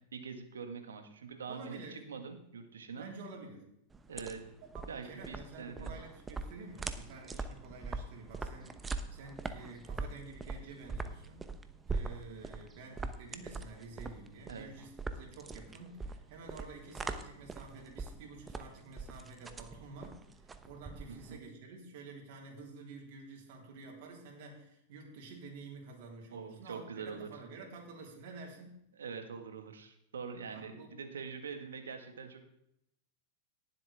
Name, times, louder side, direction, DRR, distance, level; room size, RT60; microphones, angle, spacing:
voice 1, 0.1-3.1 4.1-4.4 4.9-6.0 14.5-14.7 21.1-21.4 26.3-27.3 28.9-32.4, right 5 dB, 85° right, 6 dB, 1.7 m, -44 dB
voice 2, 1.5-2.0 3.0-3.7 4.7-11.5 11.9-28.8 30.5-31.0, right 3 dB, 65° right, 0 dB, 3.8 m, -50 dB
sound 1, 3.9-21.4, right 3 dB, 15° right, 0.9 m, -42 dB
18.0 x 7.8 x 3.6 m, 0.79 s
hypercardioid pair, 105°, 0 cm